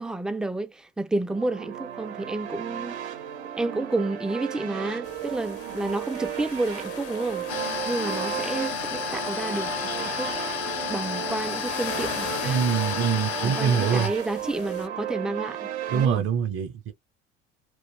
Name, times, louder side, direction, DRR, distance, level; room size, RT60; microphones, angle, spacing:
voice 1, 0.0-3.0 3.6-7.5 7.9-10.3 10.9-12.6 13.4-16.3, right 2 dB, ahead, 0.3 m, -30 dB
sound 1, 1.3-16.1, right 10 dB, 85° right, 0.6 m, -35 dB
sound 2, 5.0-14.9, left 9 dB, 45° left, 0.6 m, -41 dB
sound 3, 7.5-14.1, left 6 dB, 85° left, 0.7 m, -31 dB
voice 2, 12.4-14.1 15.9-16.9, right 7 dB, 45° right, 0.6 m, -24 dB
2.4 x 2.0 x 3.1 m
hypercardioid pair, 65°, 32 cm